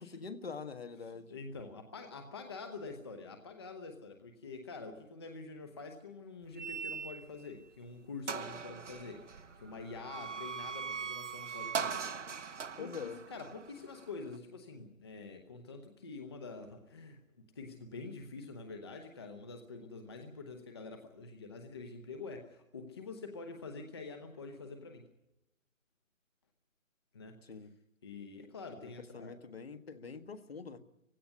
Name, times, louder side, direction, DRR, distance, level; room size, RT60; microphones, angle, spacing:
voice 1, 0.0-1.3 12.8-13.2 27.4-27.7 28.8-30.8, left 5 dB, 50° left, 9 dB, 1.6 m, -45 dB
voice 2, 1.3-12.1 12.3-12.5 12.8-25.1 27.1-27.4 28.0-29.3, left 4 dB, 20° left, 5 dB, 0.9 m, -46 dB
Eeiry Gate within a forrest, 6.6-7.5 7.9-8.0 8.3-14.4, right 6 dB, 60° right, 1.1 m, -41 dB
18.0 x 16.5 x 9.6 m, 0.91 s
figure-of-eight pair, 155°, 40 cm